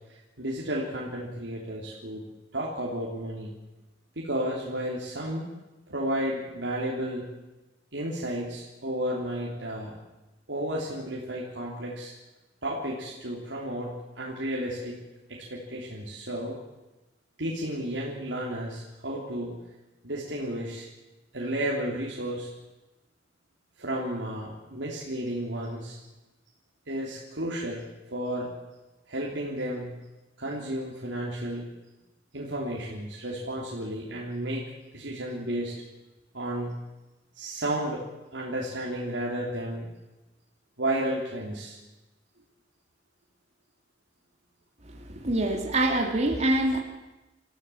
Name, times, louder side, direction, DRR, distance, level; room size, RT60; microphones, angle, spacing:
voice 1, 0.4-2.2 2.5-3.5 4.2-5.5 5.9-7.3 7.9-10.0 10.5-12.1 12.6-15.0 15.3-16.6 17.4-19.5 20.0-20.9 21.3-22.5 23.8-26.0 26.9-28.5 29.1-29.9 30.4-31.7 32.3-34.6 34.9-35.7 36.3-36.8 37.4-38.0 38.3-39.9 40.8-41.8, right 1 dB, 90° right, -3 dB, 3.5 m, -32 dB
voice 2, 44.8-46.8, right 1 dB, 40° right, 2 dB, 2.8 m, -25 dB
26.5 x 15.0 x 7.2 m, 1.1 s
head